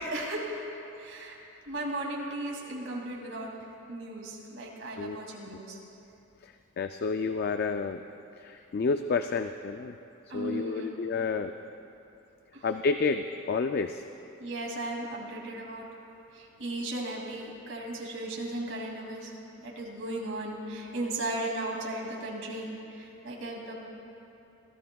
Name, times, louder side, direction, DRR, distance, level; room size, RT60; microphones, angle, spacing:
voice 1, 0.0-1.4 1.7-3.5 3.9-5.8 10.3-10.9 12.5-12.7 14.4-15.9 16.3-19.3 19.6-23.8, right 1 dB, 75° right, -2 dB, 2.5 m, -36 dB
voice 2, 6.4-8.0 8.4-10.0 10.3-11.5 12.6-14.0, left 4 dB, 50° left, 8 dB, 0.3 m, -30 dB
24.5 x 16.0 x 2.3 m, 2.8 s
head